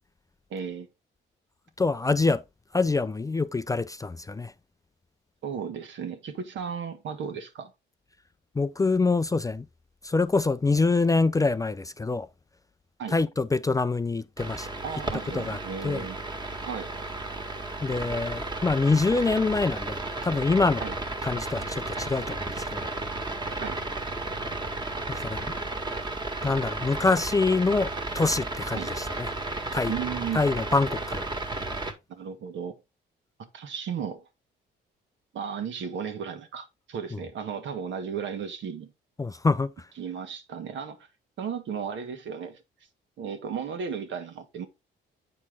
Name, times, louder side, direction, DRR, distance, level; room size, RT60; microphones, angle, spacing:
voice 1, 0.5-0.9 5.4-7.7 13.0-13.2 14.8-16.2 16.6-16.9 20.8-20.9 23.6-23.8 28.7-28.9 29.9-30.4 32.1-32.8 33.5-34.2 35.3-38.9 40.0-41.1 41.4-42.6 43.2-44.7, right 7 dB, 70° right, 1.7 m, -34 dB
voice 2, 1.8-2.4 2.7-4.5 8.6-9.6 10.0-12.3 13.1-14.7 15.3-15.6 15.8-16.1 17.8-20.9 21.2-22.9 25.1-25.5 26.4-29.3 29.7-29.9 30.3-31.3 37.1-37.2 39.2-39.7, left 3 dB, 15° left, 0.4 m, -25 dB
sound 1, 14.4-31.9, right 2 dB, 20° right, 1.8 m, -33 dB
8.5 x 4.5 x 3.6 m
cardioid pair, 90°, 20 cm